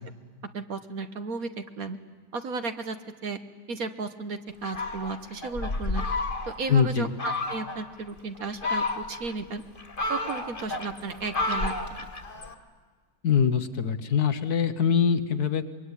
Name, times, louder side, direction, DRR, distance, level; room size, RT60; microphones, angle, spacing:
voice 1, 0.5-2.0 2.3-3.0 3.2-3.4 3.7-6.0 6.5-9.6 10.1-11.7, right 4 dB, 55° right, 9 dB, 1.5 m, -34 dB
Fowl, 4.6-6.7 7.2-7.8 8.4-9.3 9.8-12.5, left 2 dB, 30° left, 1.9 m, -31 dB
voice 2, 6.7-7.1 13.2-15.6, left 7 dB, 60° left, 10 dB, 1.6 m, -23 dB
25.0 x 22.5 x 9.8 m, 1.5 s
omnidirectional pair, 2.0 m